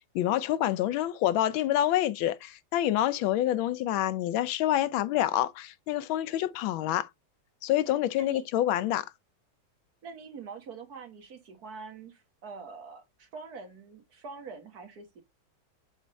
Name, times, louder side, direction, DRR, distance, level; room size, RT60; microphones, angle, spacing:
voice 1, 0.0-7.1 7.6-9.1, left 13 dB, 85° left, 1.4 m, -27 dB
voice 2, 10.0-15.2, right 4 dB, 55° right, 1.6 m, -45 dB
7.5 x 3.4 x 4.0 m
omnidirectional pair, 2.1 m